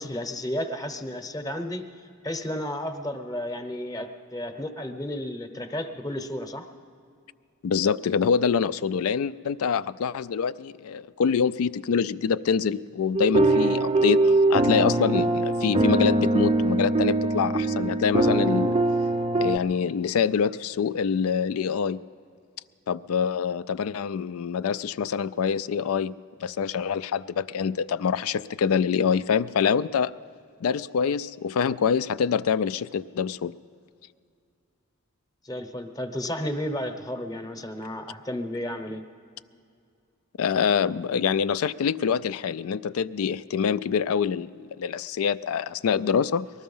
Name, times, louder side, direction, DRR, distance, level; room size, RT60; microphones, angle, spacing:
voice 1, 0.0-1.8 2.2-6.6 13.5-13.8 35.4-39.0, left 1 dB, 20° left, 7 dB, 0.8 m, -32 dB
voice 2, 7.6-18.8 19.4-22.0 22.9-26.1 26.4-30.1 30.6-33.5 40.4-46.5, left 6 dB, 80° left, 17 dB, 0.4 m, -25 dB
sound 1, 13.1-19.6, right 2 dB, 25° right, 0.5 m, -22 dB
20.0 x 13.0 x 5.5 m, 2.4 s
head